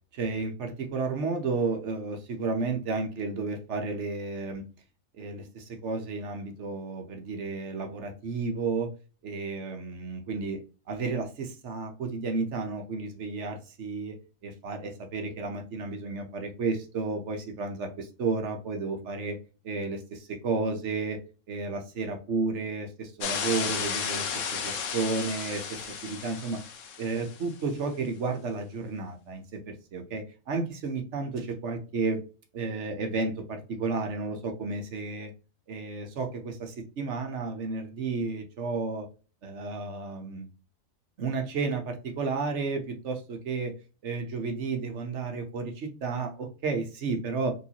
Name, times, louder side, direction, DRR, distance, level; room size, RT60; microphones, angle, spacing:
voice 1, 0.1-4.6 5.2-8.9 9.2-10.6 10.9-14.2 14.4-19.4 19.6-21.2 21.5-26.6 27.0-32.2 32.5-35.3 35.7-39.1 39.4-40.5 41.2-43.7 44.0-47.5, right 4 dB, 55° right, 4 dB, 1.0 m, -32 dB
sound 1, 23.2-27.5, left 6 dB, 60° left, 1.0 m, -33 dB
4.5 x 3.1 x 2.8 m, 0.33 s
omnidirectional pair, 1.7 m